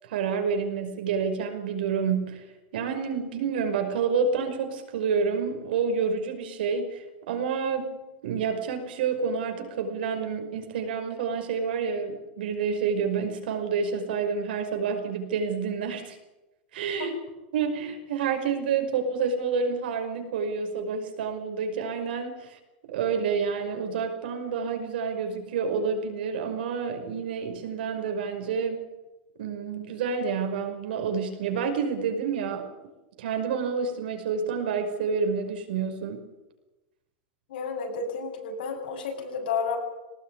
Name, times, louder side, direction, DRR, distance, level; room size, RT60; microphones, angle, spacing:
voice 1, 0.0-2.4 2.7-7.9 8.2-16.2 16.7-17.2 17.5-22.6 22.9-28.8 29.4-32.7 33.2-36.2, right 5 dB, 75° right, 5 dB, 5.4 m, -28 dB
voice 2, 37.5-39.8, left 5 dB, 75° left, 2 dB, 7.8 m, -31 dB
20.0 x 19.0 x 9.5 m, 1.0 s
supercardioid pair, 180°, 5 cm